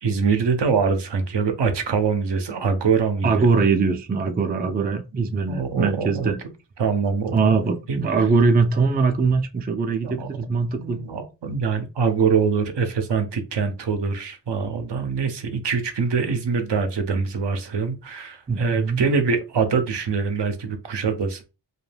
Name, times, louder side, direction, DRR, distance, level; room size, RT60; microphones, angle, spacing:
voice 1, 0.0-3.5 5.5-6.3 6.8-7.6 7.9-8.1 10.0-10.3 10.8-21.4, right 5 dB, 70° right, 0.6 m, -24 dB
voice 2, 3.2-6.4 7.3-11.0 18.5-19.0, right 4 dB, 20° right, 0.4 m, -21 dB
2.3 x 2.1 x 3.2 m
cardioid pair, 45°, 45 cm